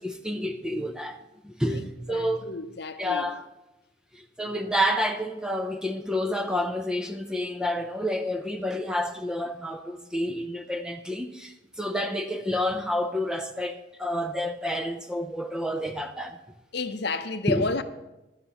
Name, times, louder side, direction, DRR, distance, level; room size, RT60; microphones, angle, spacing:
voice 1, 0.0-2.5 3.0-3.5 4.1-16.4 17.5-17.7, equal, 5° right, 0.4 m, -29 dB
voice 2, 1.7-3.3 16.7-17.8, left 3 dB, 55° left, 0.6 m, -31 dB
15.5 x 11.0 x 3.0 m
head